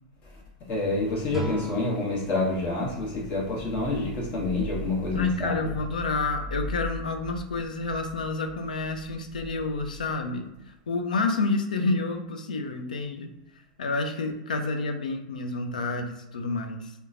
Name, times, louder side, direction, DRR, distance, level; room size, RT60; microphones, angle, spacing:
voice 1, 0.7-5.7, left 2 dB, 40° left, -3 dB, 1.1 m, -27 dB
sound 1, 1.3-4.3, equal, 5° right, 0.4 m, -40 dB
voice 2, 5.1-10.4 10.9-13.3 13.8-16.9, left 3 dB, 90° left, 5 dB, 0.4 m, -29 dB
3.0 x 2.1 x 2.4 m, 0.95 s
hypercardioid pair, 105°, 4 cm